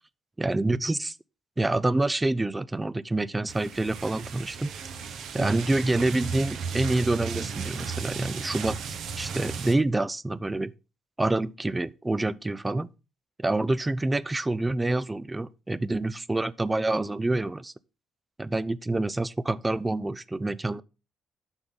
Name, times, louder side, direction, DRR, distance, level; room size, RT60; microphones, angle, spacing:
voice 1, 0.4-1.2 1.6-4.7 5.3-10.7 11.2-12.9 13.4-17.7 18.4-20.8, right 2 dB, 15° right, 0.4 m, -27 dB
sound 1, 3.5-9.7, right 5 dB, 75° right, 1.2 m, -35 dB
7.9 x 5.8 x 3.9 m
cardioid pair, 90°, 0 cm